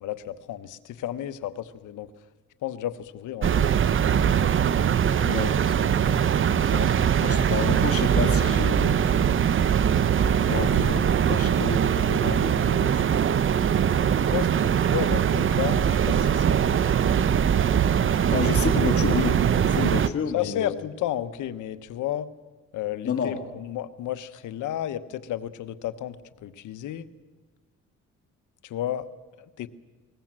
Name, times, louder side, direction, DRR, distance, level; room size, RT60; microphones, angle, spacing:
voice 1, 0.0-2.1 2.6-3.7 6.6-7.4 14.1-16.9 20.3-22.3 22.7-27.1 28.6-29.1 29.4-29.7, left 12 dB, 80° left, 13 dB, 1.1 m, -32 dB
sound 1, 3.4-20.1, right 8 dB, 45° right, 0.7 m, -22 dB
voice 2, 5.2-6.0 7.2-9.1 10.4-13.2 18.3-20.8 23.0-23.4, left 6 dB, 50° left, 5 dB, 2.1 m, -30 dB
21.5 x 19.5 x 7.5 m, 1.3 s
cardioid pair, 90°, 30 cm